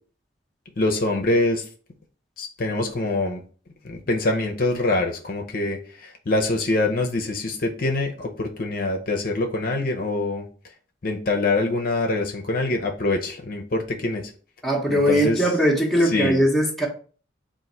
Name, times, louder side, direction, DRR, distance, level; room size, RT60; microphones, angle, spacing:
voice 1, 0.8-1.6 2.4-3.4 3.8-10.4 11.0-14.3 14.9-15.5 16.0-16.4, left 2 dB, 50° left, 2 dB, 0.6 m, -24 dB
voice 2, 14.6-16.9, equal, ahead, -1 dB, 0.8 m, -20 dB
3.8 x 2.5 x 4.2 m, 0.40 s
head